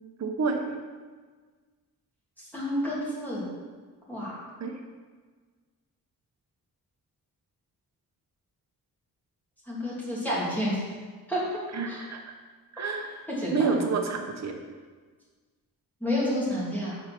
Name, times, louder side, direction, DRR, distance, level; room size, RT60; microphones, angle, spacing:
voice 1, 0.2-0.8 4.6-4.7 11.7-12.3 12.7-13.2 13.5-14.5, right 4 dB, 45° right, 4 dB, 1.0 m, -29 dB
voice 2, 2.4-3.5 4.1-4.4 9.7-10.8 11.3-11.6 11.8-12.0 13.4-13.8 16.0-17.0, left 1 dB, 5° left, -8 dB, 2.6 m, -30 dB
8.6 x 4.2 x 5.8 m, 1.5 s
wide cardioid pair, 155°, 37 cm